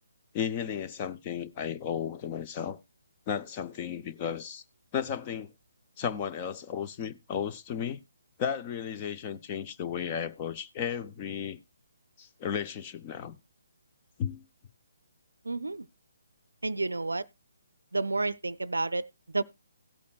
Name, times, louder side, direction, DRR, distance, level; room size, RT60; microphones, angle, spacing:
voice 1, 0.3-2.8 3.3-4.6 4.9-5.5 6.0-8.0 8.4-11.6 12.2-13.4 14.2-14.4, left 8 dB, 30° left, 0.7 m, -34 dB
voice 2, 15.4-15.9 16.6-17.3 17.9-19.4, right 2 dB, 75° right, 0.5 m, -30 dB
17.0 x 8.4 x 2.4 m
figure-of-eight pair, 140°, 0 cm